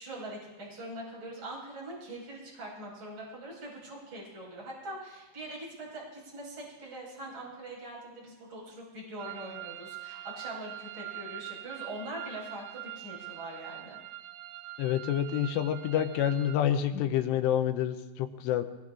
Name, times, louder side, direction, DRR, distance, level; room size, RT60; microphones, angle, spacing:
voice 1, 0.0-14.0, right 1 dB, 25° right, -4 dB, 5.7 m, -43 dB
sound 1, 9.2-16.6, right 16 dB, 85° right, 3.0 m, -44 dB
voice 2, 14.8-18.6, left 10 dB, 85° left, 8 dB, 2.8 m, -28 dB
22.0 x 21.0 x 2.5 m, 1.1 s
omnidirectional pair, 5.0 m